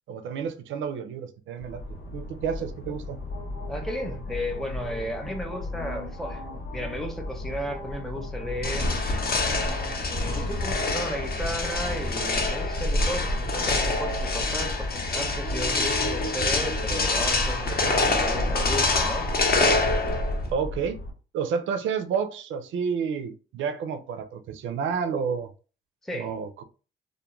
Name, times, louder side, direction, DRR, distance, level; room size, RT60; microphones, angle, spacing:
voice 1, 0.1-1.8 2.1-3.2 20.5-21.0 21.3-25.5 26.1-26.6, right 6 dB, 75° right, 0.5 m, -30 dB
sound 1, 1.6-21.1, left 2 dB, 85° left, 1.0 m, -35 dB
voice 2, 3.7-8.9 10.3-19.3 26.0-26.3, equal, ahead, 0.6 m, -34 dB
sound 2, 8.6-20.5, left 2 dB, 50° left, 0.6 m, -26 dB
2.4 x 2.1 x 3.0 m
cardioid pair, 90°, 20 cm